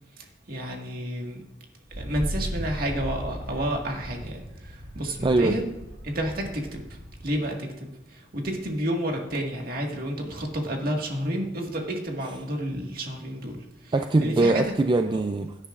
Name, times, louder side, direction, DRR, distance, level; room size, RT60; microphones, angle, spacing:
voice 1, 0.2-1.4 1.9-5.7 6.0-14.7, right 1 dB, 55° right, 1 dB, 1.8 m, -31 dB
Wind, 1.9-7.4, equal, 75° right, 2.2 m, -37 dB
voice 2, 5.2-5.6 13.9-15.7, right 2 dB, 25° right, 7 dB, 0.4 m, -22 dB
16.5 x 9.8 x 2.5 m, 0.98 s
head